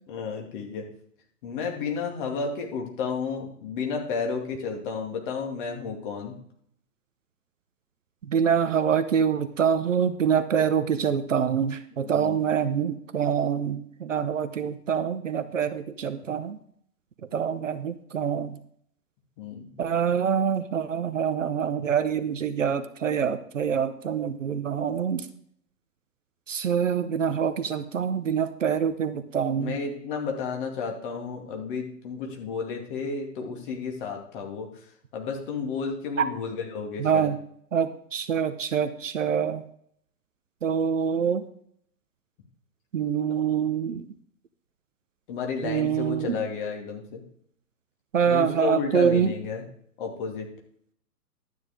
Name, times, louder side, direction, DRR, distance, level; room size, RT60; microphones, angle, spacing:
voice 1, 0.1-0.8 1.4-6.3 12.0-12.5 19.4-19.7 29.6-34.7 35.1-37.3 45.3-47.2 48.3-49.6 50.0-50.5, left 5 dB, 30° left, 1 dB, 2.3 m, -32 dB
voice 2, 8.3-16.6 17.3-18.6 19.8-25.3 26.5-29.8 36.2-36.3 37.0-37.4 37.7-39.6 40.6-41.4 42.9-44.0 45.6-46.4 48.1-49.3, right 7 dB, 50° right, 11 dB, 0.9 m, -25 dB
12.0 x 9.4 x 3.7 m, 0.64 s
figure-of-eight pair, 125°, 48 cm